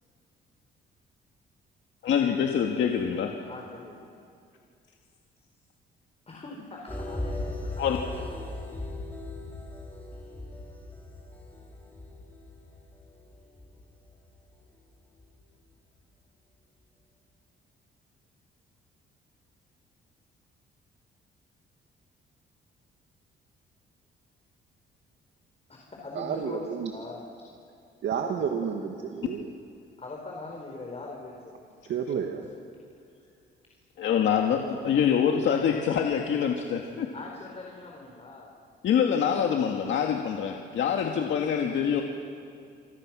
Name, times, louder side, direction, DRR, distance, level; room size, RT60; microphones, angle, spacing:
voice 1, 2.0-3.3 7.8-8.0 34.0-37.1 38.8-42.0, left 8 dB, 70° left, 1 dB, 1.9 m, -25 dB
voice 2, 3.4-4.1 6.3-7.4 7.8-8.3 25.7-27.5 29.1-29.2 30.0-31.7 33.1-33.3 37.1-38.5, left 3 dB, 30° left, -1 dB, 4.7 m, -42 dB
sound 1, 6.9-14.8 15.2-15.3, left 2 dB, 10° left, 5.2 m, -38 dB
voice 3, 26.2-26.9 28.0-29.5 31.9-32.5, right 7 dB, 70° right, 2 dB, 2.0 m, -30 dB
27.0 x 24.5 x 6.3 m, 2.4 s
cardioid pair, 90°, 20 cm